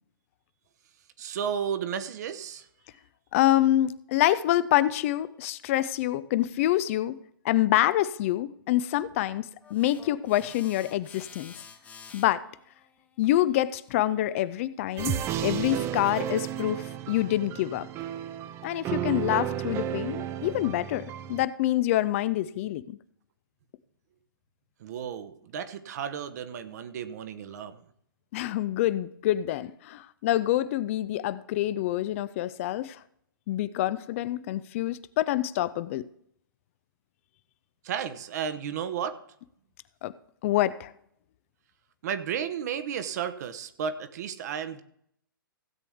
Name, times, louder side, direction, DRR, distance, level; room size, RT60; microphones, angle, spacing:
voice 1, 1.2-2.7 24.8-27.8 37.8-39.2 42.0-44.8, right 8 dB, 50° right, 10 dB, 0.9 m, -33 dB
voice 2, 3.3-7.1 7.4-11.5 12.1-12.4 13.2-17.9 18.6-23.0 28.3-33.0 33.5-36.0 40.0-40.1 40.4-40.9, left 14 dB, 35° left, 16 dB, 0.4 m, -26 dB
sound 1, 9.6-14.8, left 6 dB, 10° left, 0.9 m, -51 dB
sound 2, 15.0-21.5, right 10 dB, 20° right, 0.5 m, -33 dB
16.0 x 8.3 x 3.5 m, 0.70 s
figure-of-eight pair, 120°, 12 cm